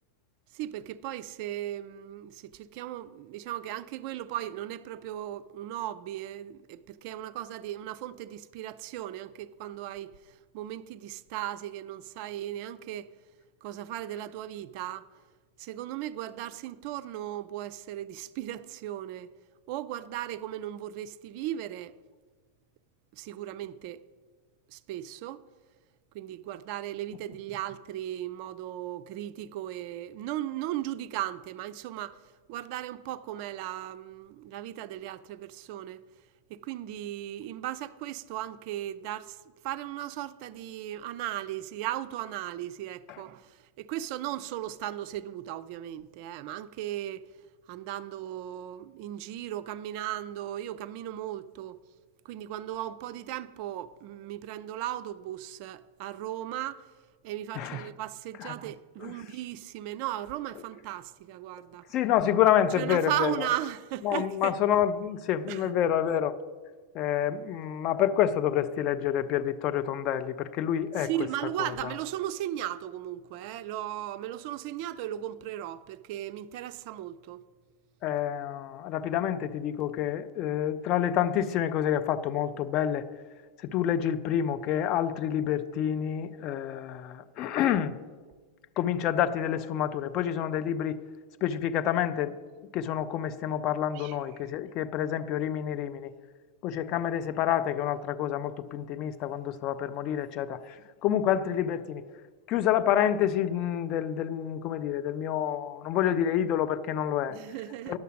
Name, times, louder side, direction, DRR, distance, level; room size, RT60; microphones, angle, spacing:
voice 1, 0.5-13.1 13.6-15.1 15.6-19.3 19.7-21.9 23.1-24.0 24.7-25.4 26.1-32.2 32.5-36.0 36.5-39.4 39.6-47.2 47.7-51.8 52.2-56.9 57.2-61.8 62.8-64.5 65.5-65.7 71.0-77.4 93.9-94.2 107.3-108.0, right 13 dB, 45° right, 0.4 m, -36 dB
voice 2, 57.5-57.9 58.4-58.5 59.0-59.1 61.9-63.5 64.0-66.4 66.9-71.1 71.6-71.9 78.0-83.1 83.6-88.0 88.8-91.0 91.4-92.4 92.7-96.1 96.6-102.0 102.5-107.4 107.9-108.0, left 10 dB, 40° left, 0.5 m, -28 dB
10.5 x 6.7 x 6.2 m
figure-of-eight pair, 90°, 0 cm